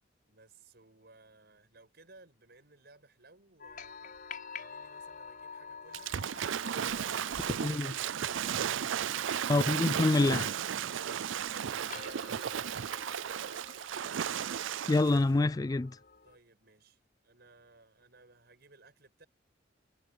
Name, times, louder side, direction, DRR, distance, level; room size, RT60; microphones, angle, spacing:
voice 1, 0.3-4.2 4.5-6.2 9.8-13.9 16.2-19.3, right 3 dB, 55° right, 7.0 m, -59 dB
sound 1, 3.6-16.4, left 5 dB, 50° left, 6.9 m, -50 dB
Waves surf / Splash splatter, 5.9-15.2, right 8 dB, 85° right, 0.5 m, -34 dB
voice 2, 7.6-7.9 9.5-10.5 14.9-16.0, left 2 dB, 20° left, 0.3 m, -26 dB
head